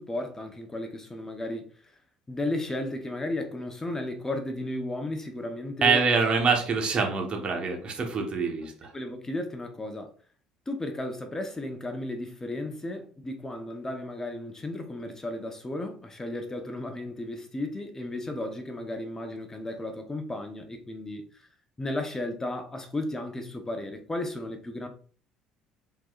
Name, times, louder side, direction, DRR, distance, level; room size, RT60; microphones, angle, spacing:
voice 1, 0.0-2.0 2.3-6.0 8.9-10.1 10.7-21.5 21.8-24.9, left 1 dB, 20° left, 0.9 m, -34 dB
voice 2, 5.8-8.9, right 5 dB, 45° right, 1.2 m, -25 dB
4.6 x 3.9 x 2.4 m
hypercardioid pair, 65°, 2 cm